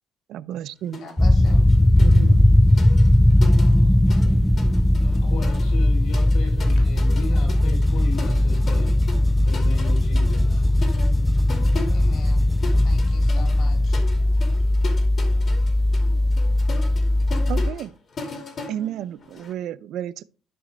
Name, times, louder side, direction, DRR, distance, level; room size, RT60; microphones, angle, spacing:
voice 1, 0.3-1.0 2.0-2.5 17.5-17.9 18.7-20.3, right 11 dB, 70° right, 0.4 m, -31 dB
sound 1, 0.9-1.2 1.5-4.3 4.6-19.5, left 3 dB, 40° left, 2.3 m, -38 dB
voice 2, 1.0-1.7 11.9-12.4 12.8-14.0, left 3 dB, 65° left, 3.2 m, -42 dB
sound 2, 1.2-17.7, left 1 dB, 5° left, 0.3 m, -18 dB
voice 3, 4.2-4.6 5.0-8.9 9.4-10.7, left 3 dB, 80° left, 3.4 m, -37 dB
12.5 x 5.1 x 3.2 m
cardioid pair, 120°, 0 cm